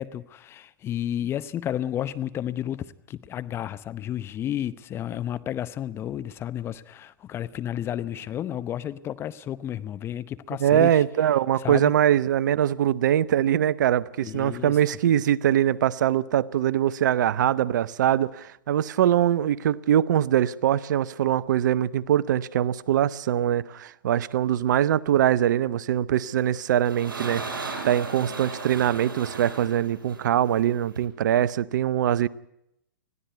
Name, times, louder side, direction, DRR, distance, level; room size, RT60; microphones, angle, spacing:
voice 1, 0.0-11.0 11.6-11.9 14.2-14.8, left 11 dB, 20° left, 0.8 m, -32 dB
voice 2, 10.6-32.3, right 11 dB, 60° right, 0.8 m, -23 dB
sound 1, 26.4-31.0, right 4 dB, 75° right, 6.1 m, -36 dB
21.0 x 15.0 x 9.3 m
hypercardioid pair, 125°, 11 cm